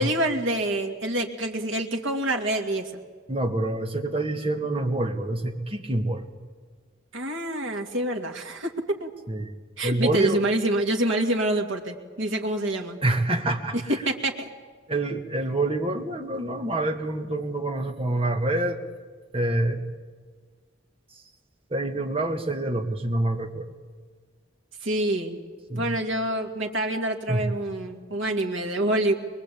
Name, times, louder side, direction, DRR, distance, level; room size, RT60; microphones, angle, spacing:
voice 1, 0.0-2.9 7.1-9.1 9.8-13.0 13.7-14.5 24.8-25.4 25.7-29.1, right 1 dB, 80° right, 2 dB, 2.4 m, -26 dB
voice 2, 3.3-6.3 9.3-9.5 9.8-10.4 13.0-13.8 14.9-18.8 19.3-19.8 21.7-23.7 25.7-25.9 27.3-27.4, right 2 dB, 30° right, 4 dB, 1.9 m, -26 dB
23.0 x 22.0 x 8.6 m, 1.5 s
head